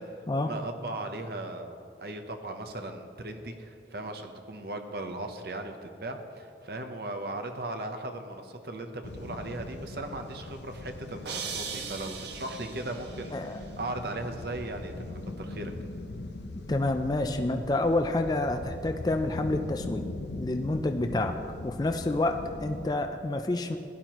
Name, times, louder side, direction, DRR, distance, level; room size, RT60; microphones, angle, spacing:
voice 1, 0.0-15.7, right 2 dB, 60° right, 5 dB, 0.8 m, -38 dB
sound 1, 9.0-23.0, left 2 dB, 80° left, 0.6 m, -41 dB
sound 2, 11.3-13.3, right 5 dB, 75° right, 1.2 m, -38 dB
voice 2, 16.7-20.0 20.3-21.4 21.6-23.8, left 2 dB, 20° left, 6 dB, 0.4 m, -28 dB
16.0 x 11.0 x 3.0 m, 2.7 s
head